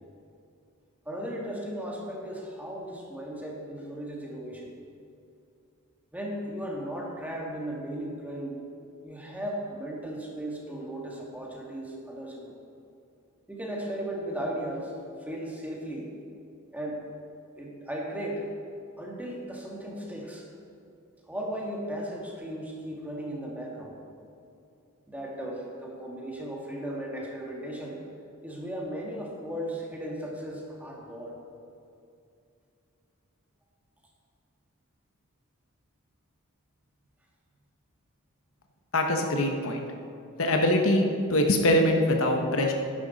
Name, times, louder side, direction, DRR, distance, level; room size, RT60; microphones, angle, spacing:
voice 1, 1.0-4.7 6.1-8.6 9.0-12.6 13.5-14.9 15.2-16.1 16.7-17.0 17.5-18.4 19.0-20.5 21.3-23.9 25.1-28.0 28.4-31.4, right 1 dB, 5° right, -2 dB, 1.6 m, -36 dB
voice 2, 38.9-39.8 40.4-42.7, left 1 dB, 70° left, 3 dB, 1.1 m, -23 dB
10.5 x 10.5 x 4.1 m, 2.6 s
head